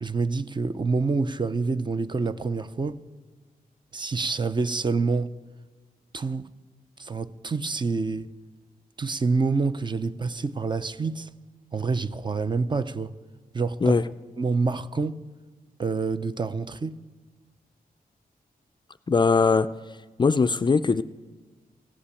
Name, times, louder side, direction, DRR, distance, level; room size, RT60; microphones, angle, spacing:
voice 1, 0.0-3.0 3.9-5.3 6.1-6.5 7.0-8.3 9.0-11.3 11.7-13.2 13.5-14.0 14.4-15.2 15.8-17.0, right 4 dB, 30° right, 0.5 m, -27 dB
voice 2, 19.1-19.7 20.2-21.0, left 4 dB, 30° left, 0.4 m, -20 dB
15.5 x 8.6 x 8.3 m
wide cardioid pair, 115°, 16 cm